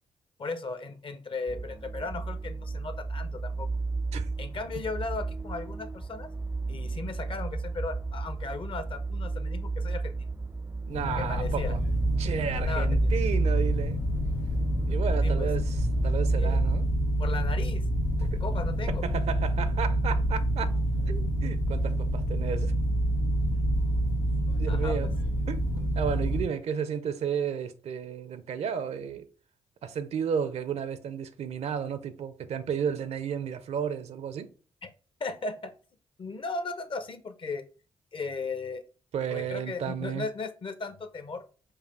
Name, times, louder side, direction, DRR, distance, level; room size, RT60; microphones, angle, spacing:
voice 1, 0.4-3.7 4.4-6.3 6.7-10.1 11.1-11.8 12.6-13.1 15.2-15.5 16.4-16.6 17.2-17.8 18.2-19.0 24.7-25.1 34.8-34.9 35.2-35.7 36.2-37.6 38.1-38.8 39.3-41.4, left 3 dB, 50° left, 0.7 m, -36 dB
sound 1, 1.5-16.7, right 3 dB, 15° right, 0.4 m, -32 dB
sound 2, 10.9-26.4, right 1 dB, 85° left, 1.3 m, -28 dB
voice 2, 10.9-11.8 12.2-14.0 14.9-16.9 18.3-18.4 19.0-20.7 21.1-22.7 24.6-25.1 25.5-29.3 29.8-34.5 39.1-40.2, right 7 dB, 70° right, 0.5 m, -33 dB
4.8 x 2.5 x 3.4 m
supercardioid pair, 55°, 12 cm